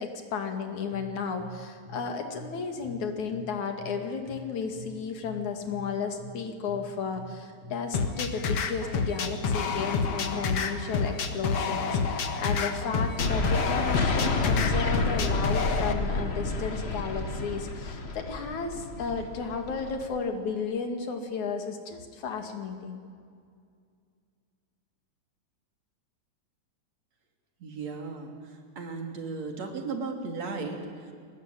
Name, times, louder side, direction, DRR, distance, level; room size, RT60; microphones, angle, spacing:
voice 1, 0.0-23.0, left 5 dB, 75° left, 5 dB, 3.8 m, -33 dB
sound 1, 0.9-8.5, equal, 90° right, 6.3 m, -46 dB
sound 2, 7.9-15.9, left 5 dB, 55° left, 2.5 m, -28 dB
sound 3, 13.2-20.2, left 3 dB, 30° left, 1.3 m, -30 dB
voice 2, 27.6-31.1, right 4 dB, 60° right, 3 dB, 4.2 m, -36 dB
29.0 x 21.0 x 9.3 m, 2.3 s
omnidirectional pair, 3.4 m